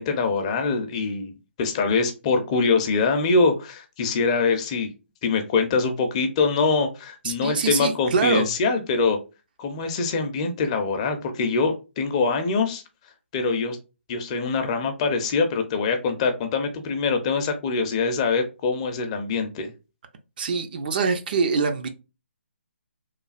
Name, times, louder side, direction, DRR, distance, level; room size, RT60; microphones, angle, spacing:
voice 1, 0.0-1.3 1.6-4.9 5.2-9.2 9.6-12.8 13.3-13.8 14.1-19.7, left 4 dB, 30° left, 0.5 m, -24 dB
voice 2, 7.2-8.5 20.4-21.9, right 5 dB, 45° right, 0.5 m, -24 dB
3.1 x 2.3 x 2.4 m
figure-of-eight pair, 145°, 7 cm